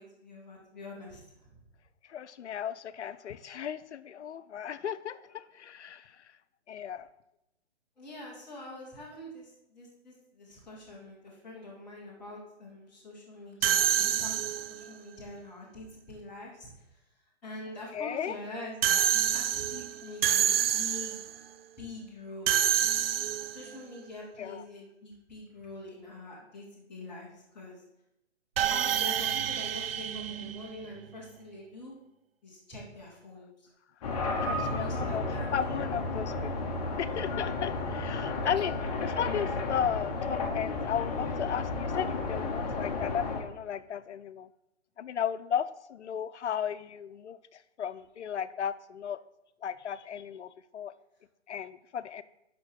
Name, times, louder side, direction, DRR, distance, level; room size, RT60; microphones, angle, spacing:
voice 1, 0.0-1.6 8.0-16.7 17.4-21.2 21.8-22.6 23.5-27.7 28.6-31.9 32.4-33.7 34.4-35.5, left 2 dB, 5° left, -7 dB, 0.4 m, -45 dB
voice 2, 2.1-6.2 6.7-7.1 17.9-18.3 24.4-24.6 34.4-35.2 35.5-38.8 39.0-44.5 45.0-49.2 49.6-50.9 51.5-52.2, left 8 dB, 75° left, 14 dB, 0.7 m, -35 dB
sound 1, 13.6-14.9 18.8-21.3 22.5-23.7 28.6-31.1, right 10 dB, 60° right, 0.5 m, -28 dB
sound 2, 34.0-43.4, left 3 dB, 35° left, 1.3 m, -32 dB
11.0 x 3.8 x 6.4 m, 0.86 s
hypercardioid pair, 155°, 34 cm